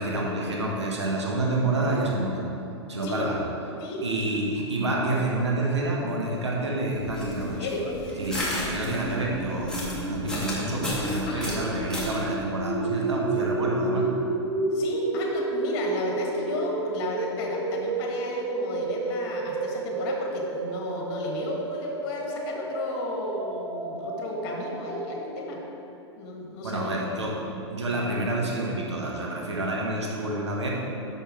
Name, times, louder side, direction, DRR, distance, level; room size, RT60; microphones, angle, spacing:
voice 1, 0.0-2.4 2.9-3.4 4.0-7.7 8.2-14.1 26.6-30.7, right 2 dB, 75° right, -2 dB, 1.3 m, -28 dB
voice 2, 3.0-3.4 3.8-4.3 7.6-7.9 11.3-11.6 14.7-25.6 26.2-26.9, left 2 dB, 45° left, 0 dB, 1.6 m, -33 dB
sound 1, 6.6-25.3, right 3 dB, 45° right, 1.0 m, -32 dB
sound 2, 6.9-12.3, left 1 dB, 5° left, 1.9 m, -34 dB
7.6 x 6.2 x 4.8 m, 2.8 s
figure-of-eight pair, 100°, 15 cm